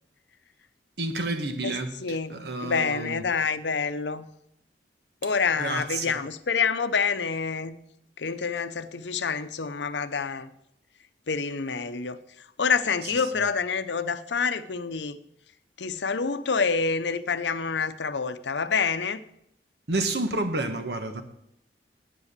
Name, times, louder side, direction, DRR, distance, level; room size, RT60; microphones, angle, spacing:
voice 1, 1.0-3.2 5.6-6.2 19.9-21.2, right 2 dB, 65° right, 1.3 m, -30 dB
voice 2, 1.6-4.3 5.2-7.8 8.2-10.5 11.3-15.2 15.8-19.2, left 5 dB, 80° left, 0.7 m, -27 dB
10.0 x 9.1 x 6.7 m
head